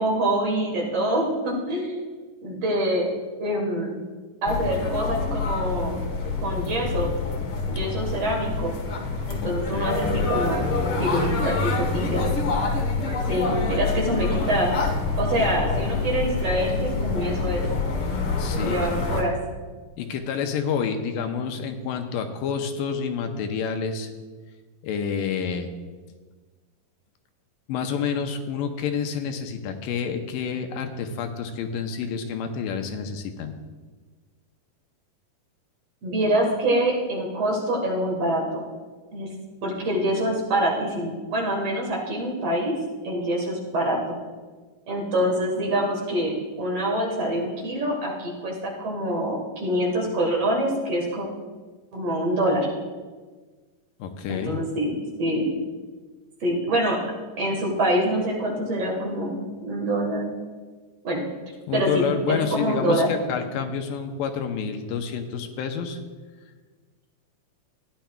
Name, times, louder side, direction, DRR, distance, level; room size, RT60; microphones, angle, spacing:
voice 1, 0.0-2.1 2.4-3.1 3.4-4.0 4.4-6.0 6.4-7.1 7.7-8.8 9.3-10.6 11.0-12.3 13.3-14.8 15.2-17.7 18.6-19.3 36.0-38.6 39.1-39.3 39.6-42.7 43.0-44.0 44.9-51.3 51.9-52.7 54.3-54.9 55.2-55.5 56.4-57.0 57.4-60.3 61.0-61.3 61.7-63.1, right 1 dB, 55° right, -1 dB, 2.3 m, -25 dB
sound 1, 4.5-19.2, left 3 dB, 60° left, 1.4 m, -26 dB
voice 2, 9.4-10.0 18.4-18.9 20.0-24.1 24.8-25.7 27.7-33.5 54.0-54.6 61.7-66.0, left 6 dB, 85° left, 5 dB, 2.4 m, -28 dB
16.0 x 10.5 x 2.3 m, 1.4 s
omnidirectional pair, 3.9 m